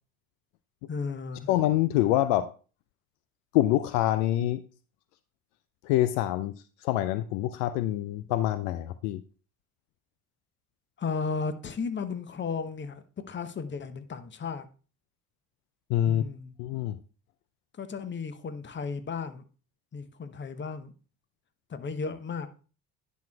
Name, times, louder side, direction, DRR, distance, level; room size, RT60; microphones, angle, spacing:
voice 1, 0.9-1.5 11.0-14.7 16.0-16.5 17.7-19.4 19.9-20.9 21.7-22.5, left 5 dB, 25° left, 0.8 m, -34 dB
voice 2, 1.5-2.5 3.5-4.6 5.8-6.5 6.8-9.2 15.9-16.2 16.6-17.0, left 13 dB, 65° left, 0.5 m, -25 dB
10.5 x 6.4 x 2.3 m
figure-of-eight pair, 50°, 47 cm